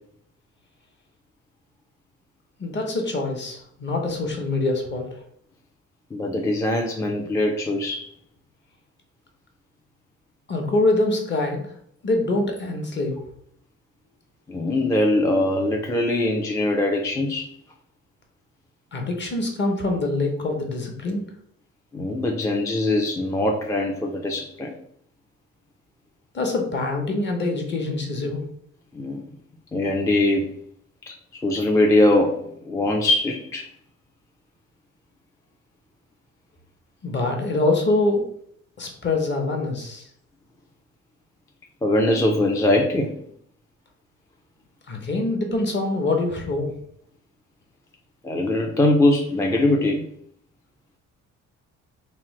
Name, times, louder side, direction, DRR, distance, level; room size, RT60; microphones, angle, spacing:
voice 1, 2.6-5.1 10.5-11.7 12.0-13.2 18.9-21.2 26.3-28.4 37.0-38.2 38.8-40.0 44.9-46.7, left 2 dB, 35° left, 2 dB, 0.8 m, -24 dB
voice 2, 6.1-8.1 14.5-17.5 21.9-24.7 28.9-29.2 29.7-30.5 31.1-33.7 41.8-43.1 48.2-50.1, left 1 dB, 10° left, 0 dB, 0.3 m, -22 dB
3.0 x 2.0 x 3.0 m, 0.66 s
cardioid pair, 90°, 30 cm